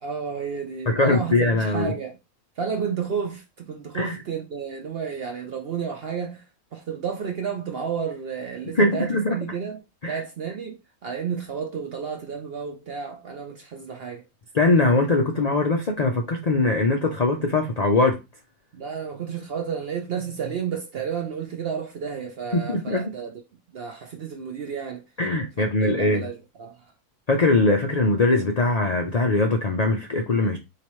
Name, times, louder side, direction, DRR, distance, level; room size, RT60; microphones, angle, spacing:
voice 1, 0.0-2.2 2.6-6.4 6.7-9.8 10.1-14.2 18.7-23.3 23.7-25.0 25.6-26.9, right 7 dB, 60° right, 0.6 m, -31 dB
voice 2, 0.9-1.9 3.9-4.2 8.7-9.4 10.0-10.2 14.5-18.2 22.5-23.1 25.2-26.3 27.3-30.6, left 2 dB, 70° left, 0.3 m, -21 dB
4.6 x 2.9 x 3.1 m
omnidirectional pair, 1.6 m